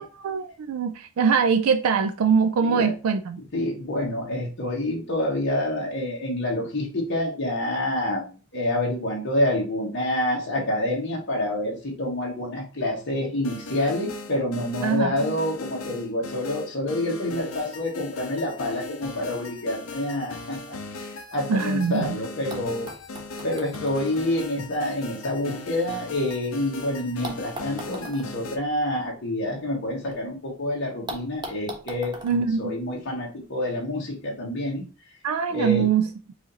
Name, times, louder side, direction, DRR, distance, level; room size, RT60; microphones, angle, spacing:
voice 1, 0.0-3.4 14.8-15.2 21.5-22.2 32.2-32.8 35.2-36.1, right 6 dB, 90° right, 0.4 m, -23 dB
voice 2, 2.6-2.9 3.5-22.9 23.4-34.9 35.5-35.9, left 1 dB, 55° left, 1.4 m, -27 dB
sound 1, 13.4-28.6, left 3 dB, 80° left, 0.8 m, -38 dB
Ping Pong Ball Hitting Floor, 22.5-26.6 27.2-30.2 30.5-30.6 31.1-33.5 34.4-34.5, right 1 dB, 20° right, 1.0 m, -42 dB
4.8 x 2.6 x 4.1 m
head